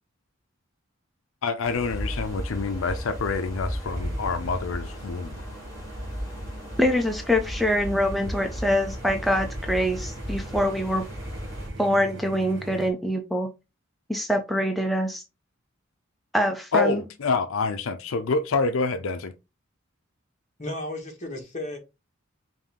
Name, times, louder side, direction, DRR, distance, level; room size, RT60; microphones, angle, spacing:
voice 1, 1.4-5.4 16.7-19.3, left 4 dB, 75° left, 0.5 m, -27 dB
sound 1, 1.6-11.7, equal, 20° left, 2.1 m, -35 dB
sound 2, 3.8-12.9, right 2 dB, 65° right, 0.9 m, -43 dB
voice 2, 6.8-11.0 11.8-13.5 14.1-15.2 16.3-17.1, equal, ahead, 0.4 m, -24 dB
voice 3, 20.6-21.8, left 1 dB, 35° left, 1.5 m, -34 dB
5.3 x 2.7 x 3.6 m
head